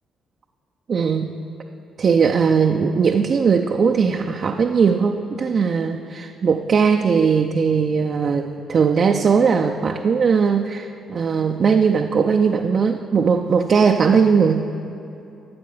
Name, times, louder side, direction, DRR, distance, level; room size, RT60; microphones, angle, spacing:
voice 1, 0.9-1.3 2.0-14.7, right 6 dB, 55° right, 3 dB, 0.5 m, -19 dB
12.0 x 7.7 x 5.6 m, 2.8 s
hypercardioid pair, 50°, 0 cm